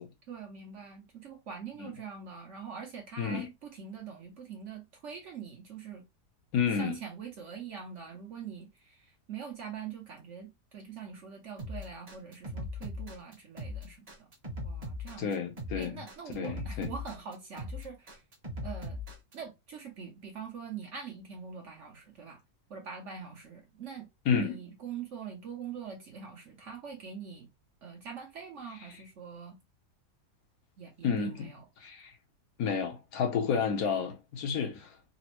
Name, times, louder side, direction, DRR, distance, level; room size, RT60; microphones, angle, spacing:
voice 1, 0.3-6.0 6.7-14.3 14.6-15.5 15.8-18.2 18.6-19.0 19.3-22.4 22.7-24.1 24.4-27.5 27.8-29.6 30.8-31.6, right 6 dB, 60° right, 0.9 m, -43 dB
voice 2, 3.2-3.5 6.5-7.0 15.2-16.0 16.3-16.9 24.3-24.6 31.0-31.5 31.8-32.2 32.6-35.0, left 6 dB, 70° left, 1.1 m, -30 dB
sound 1, 11.6-19.3, left 2 dB, 30° right, 0.8 m, -39 dB
4.1 x 2.0 x 2.9 m
omnidirectional pair, 1.7 m